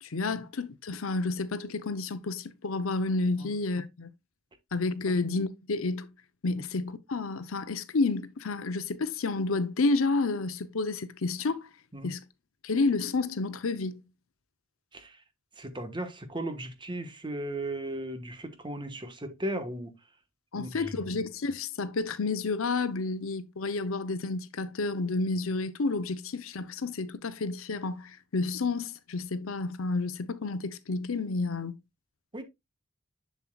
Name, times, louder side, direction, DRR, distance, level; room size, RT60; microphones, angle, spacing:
voice 1, 0.0-4.1 4.7-6.1 6.4-11.7 12.0-12.2 12.6-14.0 20.5-31.7, left 3 dB, 75° left, 0.7 m, -30 dB
voice 2, 15.6-19.9 20.5-20.9 32.3-32.4, right 1 dB, 25° right, 1.2 m, -36 dB
7.3 x 7.2 x 2.3 m
head